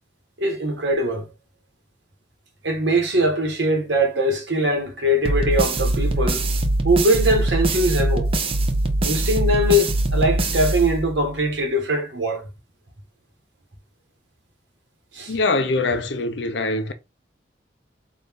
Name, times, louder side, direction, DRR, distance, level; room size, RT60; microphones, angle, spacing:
voice 1, 0.4-1.3 2.6-6.4 6.8-8.3 9.0-12.5 15.1-15.4, right 1 dB, 75° right, 1.4 m, -21 dB
sound 1, 5.2-11.4, right 2 dB, 30° right, 0.5 m, -22 dB
voice 2, 15.3-16.9, left 3 dB, 75° left, 0.7 m, -23 dB
4.0 x 2.6 x 3.6 m
head